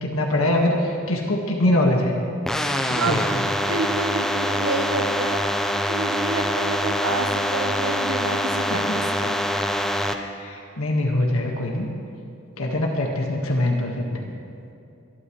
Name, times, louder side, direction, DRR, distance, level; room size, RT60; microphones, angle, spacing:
voice 1, 0.0-2.1 2.9-3.4 8.7-9.0 10.2-11.9 12.6-14.3, left 1 dB, 75° left, 0 dB, 1.7 m, -23 dB
sound 1, 2.5-10.1, equal, ahead, 0.6 m, -24 dB
voice 2, 2.9-3.2 3.6-5.6 5.9-9.3, right 3 dB, 65° right, 5 dB, 1.2 m, -29 dB
24.0 x 12.0 x 3.2 m, 2.7 s
head